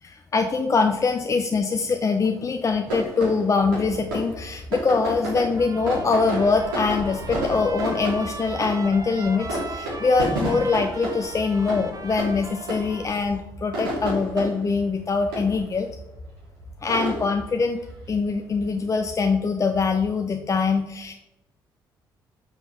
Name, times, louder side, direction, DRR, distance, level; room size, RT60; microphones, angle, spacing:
voice 1, 0.0-15.9 16.8-17.8 18.1-21.1, left 4 dB, 30° left, 5 dB, 0.6 m, -23 dB
sound 1, 2.9-20.5, right 1 dB, 75° right, 2.6 m, -33 dB
Trumpet, 5.6-13.2, right 3 dB, 30° right, 0.8 m, -39 dB
sound 2, 6.4-13.4, left 1 dB, 75° left, 1.3 m, -44 dB
6.1 x 5.2 x 4.4 m, 0.94 s
figure-of-eight pair, 45°, 11 cm